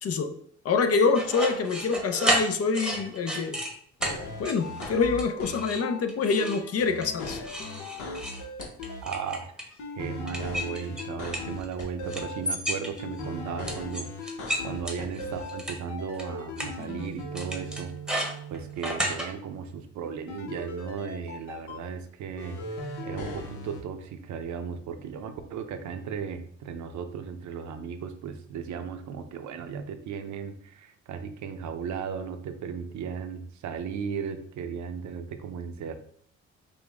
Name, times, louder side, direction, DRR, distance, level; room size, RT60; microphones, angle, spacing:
voice 1, 0.0-0.3 0.6-3.6 4.4-7.4, left 4 dB, 50° left, 7 dB, 0.7 m, -26 dB
sound 1, 1.1-3.7 4.0-4.2 4.4-4.9 5.2-5.8 6.1-6.6 7.0-9.7 10.3-11.8 12.1-13.2 13.6-15.7 16.2-16.3 16.6-16.7 17.3-19.3, right 1 dB, 5° right, 1.0 m, -31 dB
sound 2, 4.0-6.0 6.4-9.0 9.8-12.4 13.0-15.6 15.9-18.8 20.3-21.8 22.4-23.8, left 1 dB, 75° left, 1.0 m, -38 dB
voice 2, 9.0-9.5 9.9-17.9 18.5-36.0, right 6 dB, 70° right, 8 dB, 0.6 m, -36 dB
5.4 x 2.2 x 3.4 m, 0.62 s
cardioid pair, 90°, 30 cm